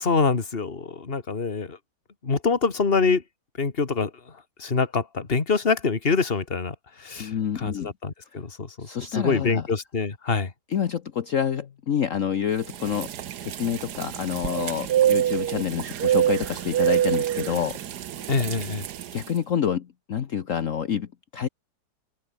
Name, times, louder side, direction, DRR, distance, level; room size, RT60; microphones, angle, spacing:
voice 1, 0.0-1.8 2.2-3.2 3.6-4.1 4.6-10.5 18.3-18.8, left 4 dB, 35° left, 2.3 m, -25 dB
voice 2, 7.2-7.9 8.8-9.6 10.7-13.1 13.4-17.8 19.1-21.5, left 8 dB, 55° left, 1.3 m, -28 dB
sound 1, 12.7-19.3, right 11 dB, 70° right, 1.5 m, -26 dB
open air
omnidirectional pair, 1.8 m